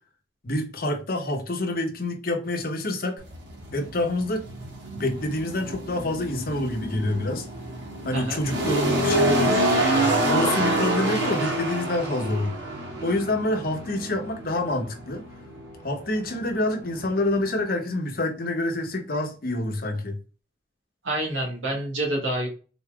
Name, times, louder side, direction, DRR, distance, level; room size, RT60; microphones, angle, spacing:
voice 1, 0.4-3.2 3.7-4.4 4.9-7.5 8.0-9.6 10.2-12.5 13.0-15.2 15.8-20.2, left 1 dB, 50° left, 0.8 m, -27 dB
sound 1, 3.2-17.6, right 1 dB, 65° right, 1.4 m, -27 dB
voice 2, 21.0-22.5, right 1 dB, 90° right, 1.6 m, -27 dB
3.9 x 3.7 x 2.3 m
head